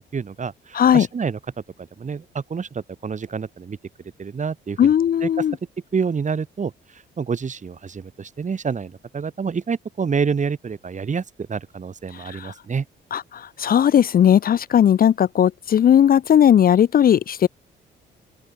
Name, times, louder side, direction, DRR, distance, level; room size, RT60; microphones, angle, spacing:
voice 1, 0.0-1.4 2.0-3.8 4.2-4.9 5.2-5.3 5.9-6.7 7.2-12.8, right 6 dB, 40° right, 3.0 m, -27 dB
voice 2, 0.7-1.1 4.8-5.6 12.1-12.5 13.1-17.5, left 9 dB, 50° left, 0.6 m, -17 dB
open air
cardioid pair, 90°, 20 cm